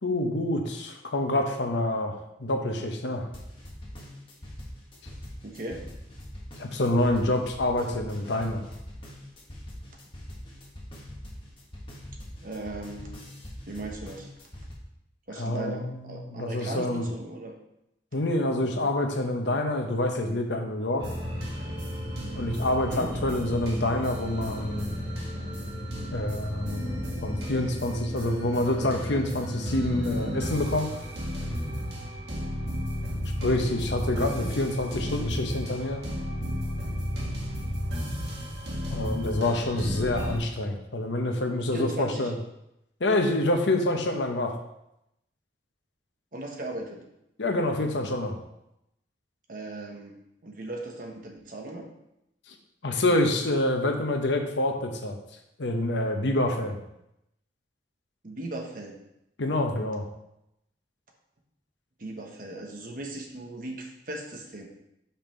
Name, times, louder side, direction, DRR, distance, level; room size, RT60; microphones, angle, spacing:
voice 1, 0.0-3.3 6.6-8.7 15.3-17.1 18.1-21.1 22.3-24.9 26.1-30.9 33.4-36.0 38.9-42.3 43.0-44.6 47.4-48.4 52.8-55.2 55.6-56.8 59.4-60.1, left 1 dB, 80° left, 4 dB, 0.9 m, -27 dB
sound 1, 3.3-14.7, left 1 dB, 30° left, 1.5 m, -43 dB
voice 2, 5.4-5.8 12.4-13.2 13.7-14.3 15.3-17.6 22.8-23.1 34.2-34.5 41.7-42.3 46.3-47.0 49.5-50.2 50.4-51.9 58.2-59.0 62.0-64.7, right 2 dB, 50° right, 1 dB, 1.2 m, -38 dB
sound 2, 21.0-40.4, equal, 70° right, 1.8 m, -33 dB
5.7 x 5.4 x 4.4 m, 0.83 s
head